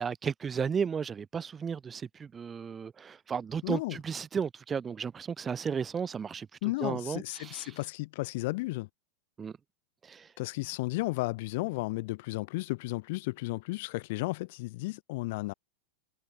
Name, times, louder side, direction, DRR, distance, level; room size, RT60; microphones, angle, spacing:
voice 1, 0.0-6.5 6.8-7.7 9.4-9.5 10.1-10.3, right 6 dB, 20° right, 2.6 m, -34 dB
voice 2, 3.6-4.0 6.6-8.9 10.4-15.5, left 22 dB, 50° left, 1.4 m, -33 dB
figure-of-eight pair, 90°, 0 cm